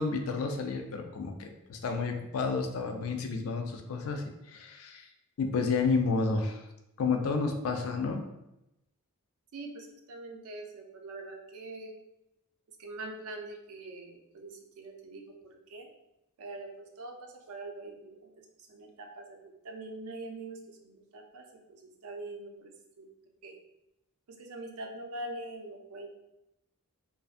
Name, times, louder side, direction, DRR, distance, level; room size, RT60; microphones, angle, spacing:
voice 1, 0.0-5.1 5.4-6.7 7.0-8.2, left 4 dB, 70° left, 5 dB, 0.4 m, -31 dB
voice 2, 9.5-12.0 12.8-15.9 16.4-23.1 23.4-23.6 24.3-26.1, right 2 dB, 75° right, 1 dB, 0.5 m, -44 dB
2.5 x 2.2 x 2.4 m, 0.88 s
head